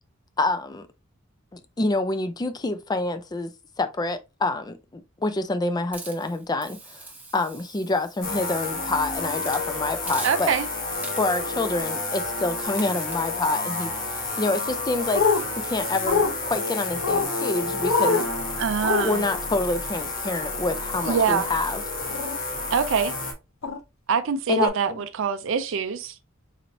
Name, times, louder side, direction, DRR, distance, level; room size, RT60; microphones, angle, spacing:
voice 1, 0.4-0.9 1.5-3.5 3.8-7.1 7.3-10.5 11.2-15.3 15.6-18.2 19.0-21.8 24.5-25.0, left 2 dB, 20° left, 0.4 m, -27 dB
Hiss, 5.9-8.8 9.3-9.7 10.1-10.7 11.0-11.5 12.2-12.4 12.8-13.3, right 3 dB, 10° right, 0.9 m, -42 dB
sound 1, 8.2-23.3, left 3 dB, 45° left, 1.1 m, -30 dB
voice 2, 10.2-10.7 18.6-19.2 21.1-21.5 22.7-23.1 24.1-26.2, right 6 dB, 65° right, 0.4 m, -24 dB
sound 2, 15.1-15.4 16.1-16.3 17.0-17.3 17.8-18.3 18.8-19.1 21.1-21.2 22.1-22.4 23.6-23.8 24.6-24.7, left 5 dB, 80° left, 0.7 m, -23 dB
4.0 x 3.0 x 2.8 m
head